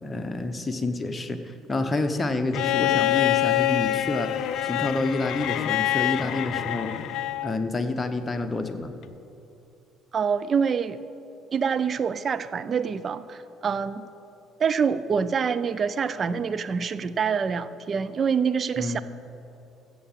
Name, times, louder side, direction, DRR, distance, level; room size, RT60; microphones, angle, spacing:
voice 1, 0.0-4.3 4.6-6.9 7.4-8.9 18.8-19.0, left 2 dB, 20° left, 6 dB, 1.1 m, -28 dB
Bowed string instrument, 2.5-7.6 9.0-9.1, left 13 dB, 60° left, 0.4 m, -25 dB
voice 2, 10.1-11.0 11.5-14.1 14.6-19.0, right 6 dB, 40° right, 14 dB, 0.5 m, -26 dB
15.5 x 7.2 x 5.7 m, 2.8 s
figure-of-eight pair, 50°, 0 cm